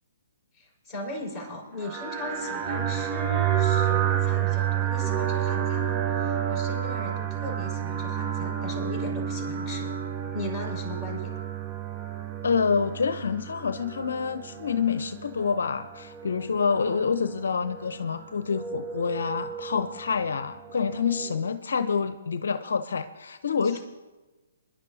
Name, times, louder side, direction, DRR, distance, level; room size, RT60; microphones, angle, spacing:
voice 1, 0.5-10.0 10.3-11.3 23.6-23.8, left 1 dB, 10° left, -6 dB, 5.2 m, -38 dB
sound 1, 1.8-21.5, right 10 dB, 25° right, 0.9 m, -30 dB
voice 2, 12.4-23.8, left 5 dB, 70° left, 10 dB, 0.7 m, -27 dB
26.5 x 11.0 x 2.7 m, 1.2 s
hypercardioid pair, 135°, 0 cm